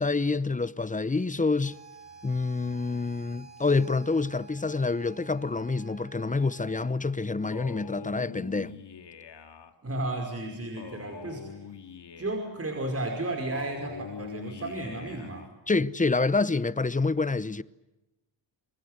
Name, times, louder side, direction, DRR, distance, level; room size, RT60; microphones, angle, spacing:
voice 1, 0.0-1.8 2.2-8.8 15.7-17.6, left 3 dB, 20° left, 0.8 m, -27 dB
sound 1, 1.6-6.9, right 4 dB, 80° right, 7.9 m, -50 dB
Male speech man speaking, 7.5-9.7 10.8-12.6 13.5-15.5, left 7 dB, 65° left, 2.5 m, -43 dB
voice 2, 9.8-11.5 12.2-15.5, right 2 dB, 35° right, 5.4 m, -33 dB
29.0 x 23.0 x 7.9 m
cardioid pair, 95°, 44 cm